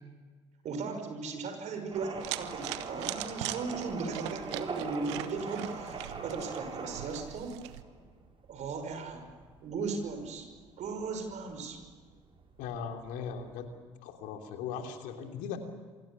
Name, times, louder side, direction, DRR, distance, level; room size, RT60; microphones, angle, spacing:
voice 1, 0.6-7.6 8.5-9.4 9.6-10.5 10.8-11.8, right 4 dB, 55° right, 6 dB, 5.7 m, -37 dB
sound 1, 1.9-13.7, right 4 dB, 35° right, 6.2 m, -43 dB
sound 2, 2.2-7.8, right 15 dB, 75° right, 1.2 m, -41 dB
voice 2, 12.6-13.7 14.0-15.6, left 7 dB, 65° left, 4 dB, 3.2 m, -38 dB
28.0 x 24.5 x 7.2 m, 1.5 s
figure-of-eight pair, 55°, 15 cm